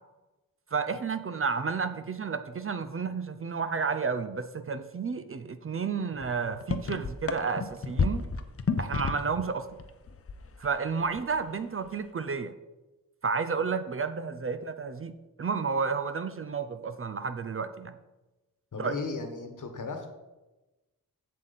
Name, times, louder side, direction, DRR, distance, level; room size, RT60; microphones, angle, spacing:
voice 1, 0.7-8.2 8.8-9.7 10.6-12.5 13.2-17.9 18.8-18.9, right 5 dB, 40° right, 10 dB, 0.5 m, -31 dB
sound 1, 6.2-6.3 6.5-9.4 9.7-10.8 11.0-11.4, left 5 dB, 40° left, 0.6 m, -30 dB
voice 2, 18.7-20.1, left 4 dB, 60° left, 6 dB, 1.2 m, -36 dB
7.6 x 7.5 x 4.0 m, 1.1 s
wide cardioid pair, 125°, 35 cm